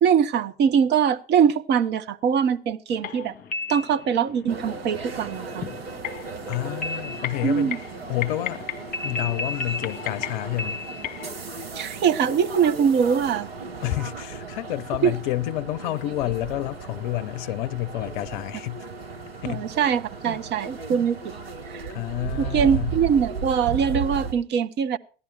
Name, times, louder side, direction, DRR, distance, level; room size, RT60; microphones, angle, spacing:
voice 1, 0.0-3.3 3.7-5.7 7.4-7.8 11.7-13.5 15.0-15.1 19.4-21.2 21.7-21.9 22.4-25.0, right 7 dB, 35° right, 1.0 m, -22 dB
sound 1, 2.9-11.3, left 5 dB, 30° left, 1.6 m, -34 dB
sound 2, 4.5-24.3, right 5 dB, 75° right, 1.4 m, -35 dB
voice 2, 6.5-7.7 8.1-8.7 9.0-10.8 13.8-18.8 19.4-19.7 20.2-20.4 21.9-22.9, left 16 dB, 50° left, 0.7 m, -29 dB
16.5 x 11.0 x 4.3 m
figure-of-eight pair, 75°, 30 cm